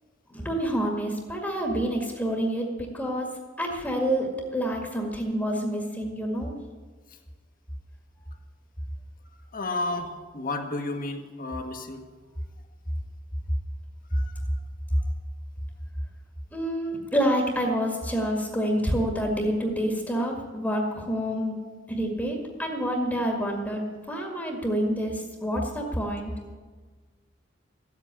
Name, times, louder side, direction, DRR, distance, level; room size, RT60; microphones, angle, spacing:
voice 1, 0.3-3.3 3.6-6.6 16.5-21.5 21.9-26.3, equal, 10° left, 0 dB, 1.9 m, -28 dB
voice 2, 9.5-12.0 14.1-14.2 21.6-21.7, left 2 dB, 45° left, 4 dB, 1.7 m, -32 dB
14.5 x 8.3 x 10.0 m, 1.4 s
head